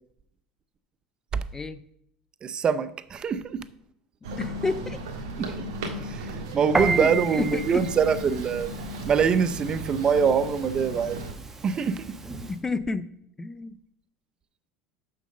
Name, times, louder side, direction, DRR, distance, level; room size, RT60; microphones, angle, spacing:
voice 1, 1.5-1.8 4.4-5.0 6.7-7.8 12.5-13.1 13.4-13.8, left 3 dB, 20° left, 0.5 m, -31 dB
voice 2, 2.4-3.6 5.4-5.7 6.1-8.7 9.0-11.2 11.6-12.2, right 6 dB, 35° right, 0.6 m, -24 dB
sound 1, 4.2-11.3, equal, 70° right, 1.6 m, -36 dB
Piano, 6.7-12.6, right 4 dB, 15° right, 1.0 m, -33 dB
6.6 x 6.3 x 6.6 m
hypercardioid pair, 90°, 3 cm